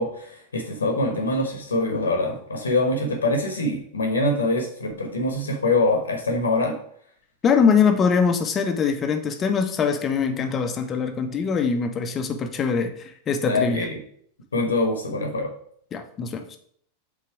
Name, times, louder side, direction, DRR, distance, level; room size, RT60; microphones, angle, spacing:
voice 1, 0.0-6.8 13.5-14.0 14.5-15.5, left 2 dB, 70° left, 3 dB, 1.1 m, -24 dB
voice 2, 7.4-13.8 15.9-16.6, left 6 dB, 25° left, 6 dB, 0.9 m, -23 dB
5.9 x 4.0 x 4.7 m, 0.64 s
figure-of-eight pair, 90°, 0 cm